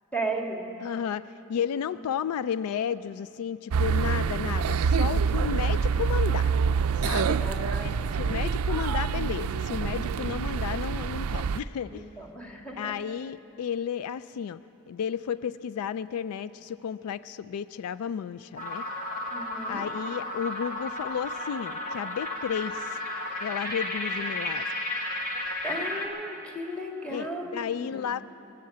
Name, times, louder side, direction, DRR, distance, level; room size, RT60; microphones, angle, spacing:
voice 1, 0.1-0.7 7.4-7.9 11.9-13.0 19.3-19.8 25.6-28.1, right 1 dB, 5° left, 1 dB, 1.7 m, -35 dB
voice 2, 0.8-6.5 7.0-7.4 7.8-7.9 8.2-12.0 12.7-14.6 14.9-18.8 19.7-22.9 23.4-24.7 27.1-28.2, left 8 dB, 80° left, 16 dB, 0.3 m, -33 dB
sound 1, 3.7-11.6, right 5 dB, 80° right, 0.4 m, -26 dB
sound 2, 18.6-26.1, left 1 dB, 40° left, 1.8 m, -33 dB
22.0 x 7.7 x 8.5 m, 2.9 s
head